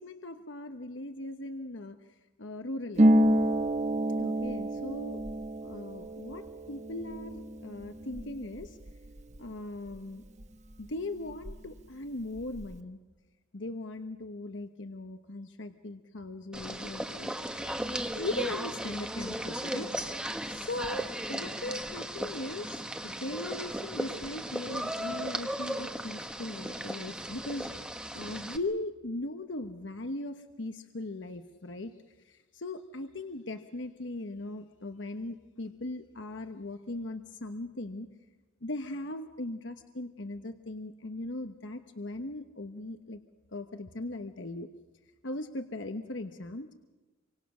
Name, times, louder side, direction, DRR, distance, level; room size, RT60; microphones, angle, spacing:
voice 1, 0.0-2.0 2.4-3.2 4.2-5.2 5.6-8.8 9.4-10.2 10.8-13.0 13.5-19.9 20.5-27.8 28.1-31.9 32.2-38.1 38.6-43.2 43.5-44.7 45.2-46.7, left 2 dB, 65° left, 7 dB, 1.1 m, -39 dB
Harp, 3.0-10.4 10.7-11.8 12.1-12.7, right 1 dB, 35° right, 1.1 m, -29 dB
sound 1, 16.5-28.6, right 1 dB, 5° right, 1.2 m, -36 dB
27.5 x 25.0 x 6.2 m, 1.2 s
head